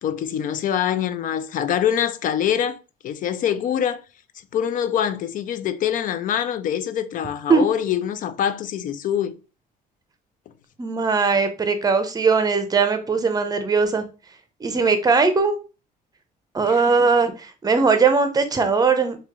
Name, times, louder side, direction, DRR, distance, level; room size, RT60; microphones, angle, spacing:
voice 1, 0.0-2.8 3.0-4.0 4.5-9.3 16.6-16.9, left 9 dB, 55° left, 0.4 m, -24 dB
voice 2, 10.8-14.0 14.6-15.6 16.5-19.2, right 4 dB, 20° right, 0.7 m, -19 dB
3.0 x 2.8 x 3.6 m
cardioid pair, 110°, 17 cm